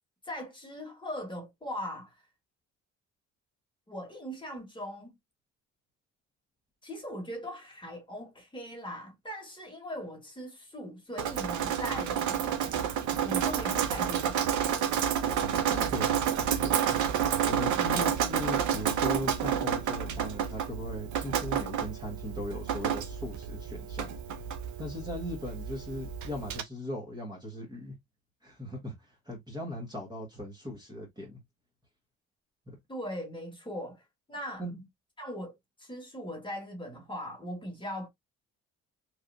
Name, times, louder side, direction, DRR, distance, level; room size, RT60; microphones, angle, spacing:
voice 1, 0.2-2.2 3.9-5.1 6.8-12.7 13.2-15.0 17.8-18.0 32.9-34.0 34.3-34.6 35.2-38.1, equal, 15° left, 1.5 m, -40 dB
Drip, 11.2-26.6, right 8 dB, 75° right, 0.7 m, -30 dB
voice 2, 15.4-16.8 17.5-24.1 24.8-27.9 28.4-31.4 32.7-32.8 34.6-34.8, left 1 dB, 15° right, 1.2 m, -39 dB
3.2 x 2.5 x 2.6 m
cardioid pair, 90°, 30 cm